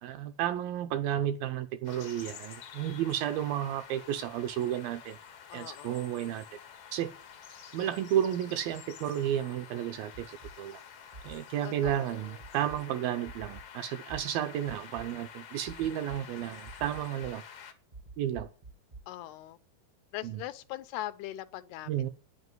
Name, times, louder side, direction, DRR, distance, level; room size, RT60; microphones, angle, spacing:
voice 1, 0.0-5.2 5.5-6.5 6.9-7.1 7.7-10.8 11.2-17.4 18.2-18.5 20.2-20.4 21.9-22.1, right 11 dB, 75° right, 2.3 m, -32 dB
sound 1, 1.8-17.7, left 7 dB, 60° left, 1.5 m, -49 dB
voice 2, 5.5-6.1 11.6-12.4 19.1-19.6 20.1-22.1, left 14 dB, 85° left, 2.8 m, -41 dB
sound 2, 10.1-10.5 11.1-11.4 11.8-11.9 12.4-12.8 13.2-13.6 14.1-14.2 14.7-15.0 15.7-16.2 16.6-17.3 17.9-19.0, right 3 dB, 25° right, 0.8 m, -46 dB
9.9 x 8.3 x 9.4 m
omnidirectional pair, 4.7 m